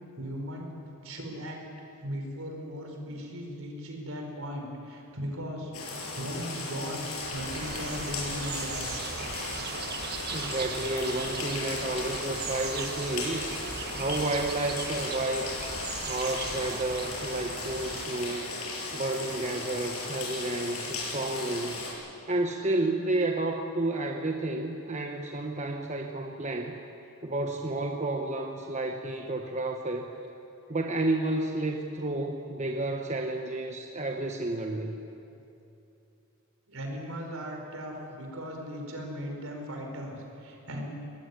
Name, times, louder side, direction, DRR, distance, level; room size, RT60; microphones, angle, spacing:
voice 1, 0.2-0.7 1.0-1.6 2.0-7.0 7.3-8.8 36.7-40.9, equal, 65° right, 2 dB, 5.1 m, -38 dB
sound 1, 5.7-21.9, left 3 dB, 80° left, 7.3 m, -36 dB
sound 2, 7.2-18.1, right 5 dB, 45° right, 1.5 m, -39 dB
voice 2, 10.3-13.6 13.9-15.6 16.0-18.5 18.9-21.8 22.3-26.8 27.2-30.1 30.7-35.0, right 2 dB, 30° right, 3 dB, 1.2 m, -31 dB
23.0 x 20.5 x 9.8 m, 2.8 s
head